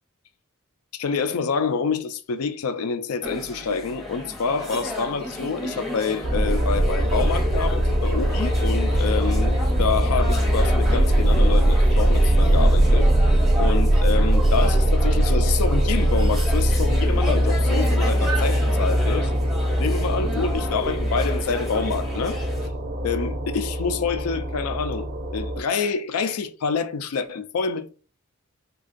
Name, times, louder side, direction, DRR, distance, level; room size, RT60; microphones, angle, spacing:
voice 1, 0.9-13.1 13.6-19.3 19.8-22.4 23.0-27.9, left 5 dB, 75° left, 0.4 m, -27 dB
sound 1, 3.2-22.7, left 1 dB, ahead, 0.7 m, -33 dB
sound 2, 6.2-25.6, right 1 dB, 45° right, 0.4 m, -21 dB
3.5 x 2.2 x 2.5 m
head